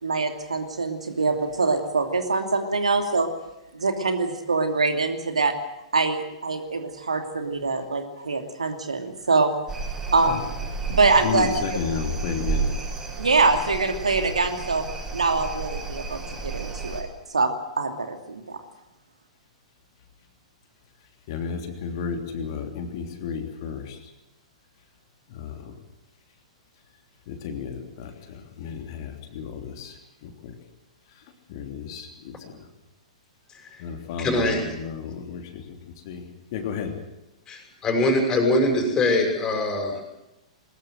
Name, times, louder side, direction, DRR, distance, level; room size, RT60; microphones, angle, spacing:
voice 1, 0.0-3.3 3.7-5.5 5.9-9.5 10.1-10.5 10.9-11.5 13.2-14.8 15.1-17.5 17.8-18.6, right 3 dB, 70° right, 5 dB, 2.7 m, -24 dB
sound 1, 9.7-17.0, right 4 dB, 15° right, 7.9 m, -32 dB
voice 2, 11.2-12.7 21.3-24.0 25.3-25.7 27.3-29.9 30.2-30.5 31.5-32.4 33.8-35.8 36.0-36.2 36.5-36.9, left 6 dB, 45° left, 4 dB, 3.2 m, -32 dB
voice 3, 34.2-34.6 37.5-40.0, left 2 dB, 20° left, 4 dB, 6.3 m, -22 dB
21.5 x 20.5 x 7.7 m, 0.93 s
figure-of-eight pair, 105°, 4 cm